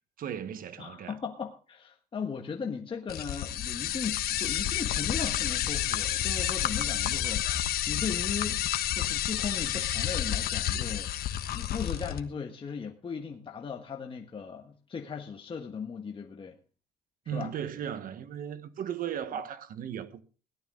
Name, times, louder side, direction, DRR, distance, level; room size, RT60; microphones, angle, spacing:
voice 1, 0.2-1.1 17.3-20.2, right 9 dB, 55° right, 1.3 m, -36 dB
voice 2, 0.8-8.6 8.9-11.3 11.5-16.5 17.2-17.5 19.3-19.4, left 6 dB, 30° left, 1.5 m, -37 dB
sound 1, 3.1-12.2, left 11 dB, 65° left, 1.3 m, -30 dB
17.5 x 12.0 x 3.8 m
cardioid pair, 110°, 17 cm